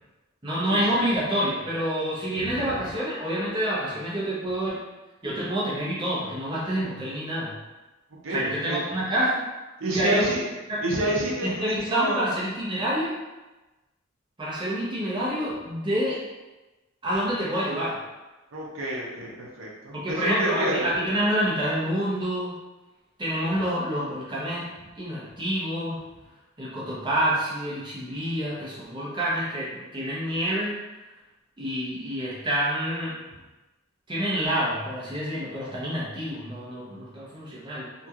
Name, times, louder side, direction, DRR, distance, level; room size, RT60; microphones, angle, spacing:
voice 1, 0.4-4.8 5.2-7.5 8.3-9.4 9.9-10.3 10.7-10.8 11.4-13.1 14.4-16.2 17.0-18.0 19.9-22.5 23.2-24.7 25.0-26.0 26.6-30.8 31.6-33.2 34.1-37.9, right 1 dB, 25° right, -7 dB, 0.8 m, -27 dB
voice 2, 8.6-9.0 9.8-10.4 10.8-12.3 18.5-20.9, right 1 dB, 75° right, -4 dB, 0.6 m, -28 dB
2.9 x 2.7 x 2.4 m, 1.1 s
head